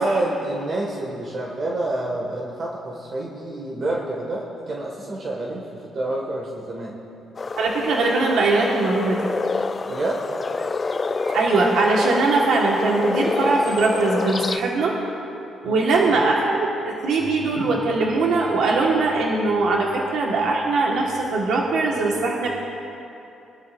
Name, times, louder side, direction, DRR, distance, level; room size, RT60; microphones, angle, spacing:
voice 1, 0.0-6.9 9.9-10.2 15.6-15.9, right 2 dB, 50° right, -2 dB, 1.7 m, -28 dB
sound 1, 7.4-14.6, left 4 dB, 30° left, 0.4 m, -28 dB
voice 2, 7.6-9.2 11.2-14.9 15.6-16.7 17.0-22.5, right 3 dB, 75° right, -2 dB, 1.4 m, -21 dB
21.5 x 12.0 x 2.5 m, 2.8 s
cardioid pair, 90°, 0 cm